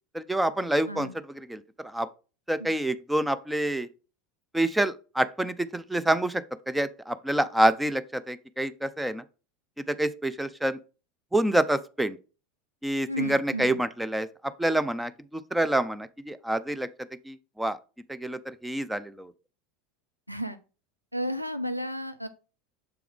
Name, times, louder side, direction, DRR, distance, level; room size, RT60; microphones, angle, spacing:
voice 1, 0.1-1.1 1.3-2.1 2.5-3.9 4.5-9.2 9.8-10.8 11.3-12.2 12.8-17.8 18.1-19.3, right 1 dB, 5° right, 0.5 m, -27 dB
voice 2, 13.1-13.8 20.3-20.6 21.1-22.3, equal, 90° right, 0.6 m, -33 dB
6.8 x 4.6 x 3.6 m
figure-of-eight pair, 80°, 0 cm